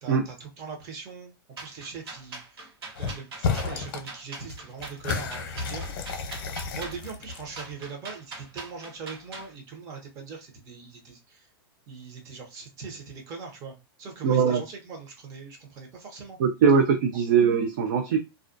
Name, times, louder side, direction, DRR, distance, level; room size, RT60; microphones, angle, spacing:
voice 1, 0.0-2.7 3.0-5.9 6.1-6.3 6.7-11.5 11.9-16.4, right 5 dB, 25° right, 1 dB, 0.7 m, -41 dB
sound 1, 1.6-9.5, right 3 dB, 80° right, 1.1 m, -42 dB
sound 2, 2.9-3.1 3.4-4.1 4.4-7.7, left 5 dB, 60° left, 0.7 m, -32 dB
voice 2, 14.2-14.6 16.4-18.2, right 6 dB, 50° right, 6 dB, 0.4 m, -21 dB
2.3 x 2.1 x 2.5 m, 0.25 s
supercardioid pair, 165°, 13 cm